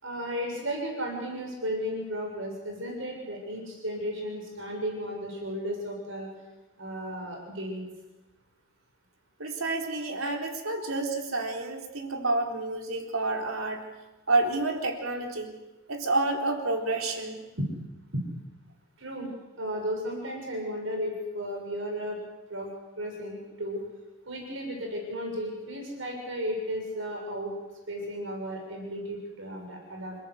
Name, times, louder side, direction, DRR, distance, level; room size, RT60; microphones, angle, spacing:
voice 1, 0.0-6.3 6.8-7.8 17.6-17.7 18.1-18.2 19.0-19.3 19.6-22.2 22.5-23.8 24.3-27.5 27.9-30.2, equal, 70° right, 0 dB, 7.2 m, -34 dB
voice 2, 9.4-13.9 14.3-15.5 15.9-17.4, right 2 dB, 90° right, 2 dB, 4.0 m, -29 dB
28.0 x 18.0 x 8.3 m, 1.1 s
head